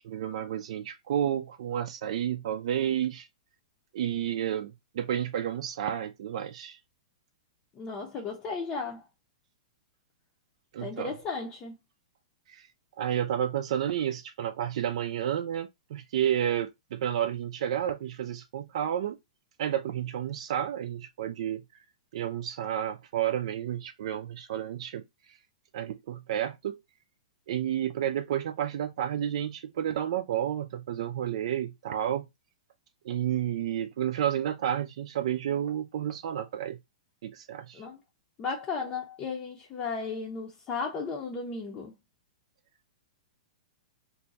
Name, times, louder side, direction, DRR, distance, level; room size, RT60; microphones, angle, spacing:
voice 1, 0.0-3.3 3.9-6.8 10.7-11.2 12.5-12.7 13.0-19.2 19.6-21.6 22.1-25.4 25.7-26.8 27.5-32.3 33.0-36.8 37.2-37.9, right 10 dB, 65° right, 0.4 m, -31 dB
voice 2, 7.7-9.0 10.8-11.8 37.7-38.0 38.4-42.0, left 4 dB, 30° left, 0.6 m, -35 dB
2.6 x 2.2 x 4.0 m
hypercardioid pair, 125°, 4 cm